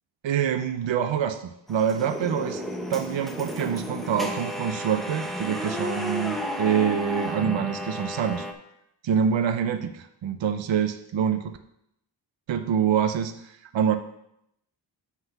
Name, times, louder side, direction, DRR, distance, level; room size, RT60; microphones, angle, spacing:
voice 1, 0.2-2.6 2.9-8.5 9.0-11.6 12.5-14.0, right 8 dB, 75° right, 8 dB, 0.6 m, -26 dB
sound 1, 1.7-8.5, equal, ahead, 0.8 m, -32 dB
8.0 x 4.0 x 5.8 m, 0.78 s
wide cardioid pair, 125°, 46 cm